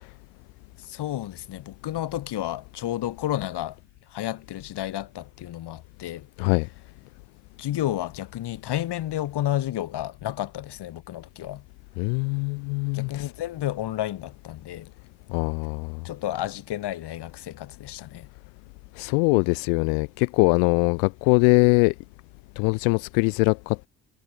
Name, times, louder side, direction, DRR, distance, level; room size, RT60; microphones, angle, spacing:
voice 1, 0.8-3.8 4.1-6.6 7.6-11.6 12.9-14.9 16.0-18.3, left 13 dB, 65° left, 7.4 m, -31 dB
voice 2, 12.0-13.2 15.3-16.0 19.0-21.9 22.6-23.8, left 40 dB or more, 85° left, 3.5 m, -22 dB
supercardioid pair, 65°, 43 cm